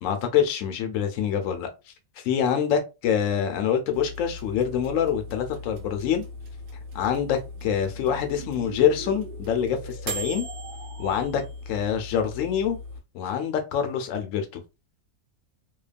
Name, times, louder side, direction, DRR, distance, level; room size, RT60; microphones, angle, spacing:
voice 1, 0.0-1.7 2.2-6.2 6.9-10.5 11.0-12.8 13.1-14.6, left 8 dB, 70° left, 7 dB, 0.9 m, -25 dB
sound 1, 3.9-13.0, left 1 dB, 80° right, 1.3 m, -39 dB
sound 2, 6.3-11.3, right 5 dB, 55° right, 0.7 m, -44 dB
2.8 x 2.2 x 2.4 m, 0.27 s
omnidirectional pair, 1.5 m